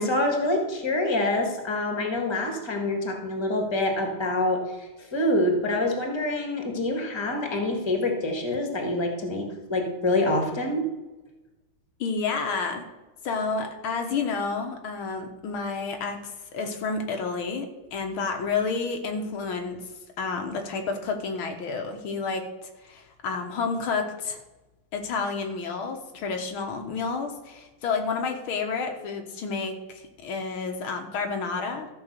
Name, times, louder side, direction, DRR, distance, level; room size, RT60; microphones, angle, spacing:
voice 1, 0.0-10.9, left 1 dB, 15° left, 2 dB, 1.5 m, -26 dB
voice 2, 12.0-12.9 13.2-16.2 16.5-19.8 20.2-22.5 22.8-24.4 24.9-31.9, left 4 dB, 80° left, 4 dB, 2.0 m, -30 dB
14.0 x 5.2 x 6.7 m, 1.1 s
omnidirectional pair, 2.3 m